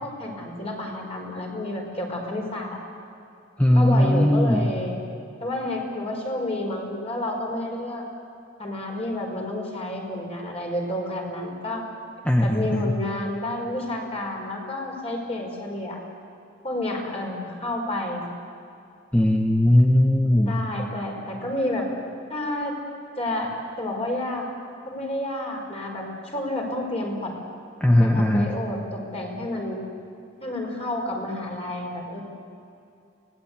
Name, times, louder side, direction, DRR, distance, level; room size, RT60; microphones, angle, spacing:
voice 1, 0.0-2.8 3.7-5.0 5.4-8.1 8.6-11.9 12.4-16.0 16.6-18.2 20.4-21.9 22.3-22.8 23.2-24.5 24.9-27.4 28.0-29.8 30.4-32.2, left 1 dB, 30° left, 0 dB, 5.2 m, -30 dB
voice 2, 3.6-4.7 12.2-13.0 19.1-20.6 27.8-28.5, left 1 dB, 5° left, 2 dB, 1.0 m, -19 dB
25.0 x 19.0 x 8.2 m, 2.6 s
head